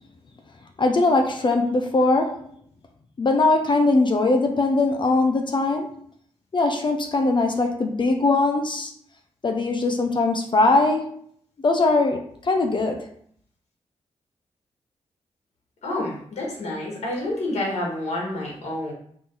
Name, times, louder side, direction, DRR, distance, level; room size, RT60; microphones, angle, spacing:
voice 1, 0.8-2.4 3.2-6.0 6.5-8.9 9.4-11.2 11.6-13.0, left 2 dB, 45° left, 4 dB, 0.5 m, -21 dB
voice 2, 15.8-18.9, left 1 dB, 70° left, -3 dB, 1.3 m, -28 dB
3.1 x 2.6 x 3.7 m, 0.63 s
supercardioid pair, 50°, 12 cm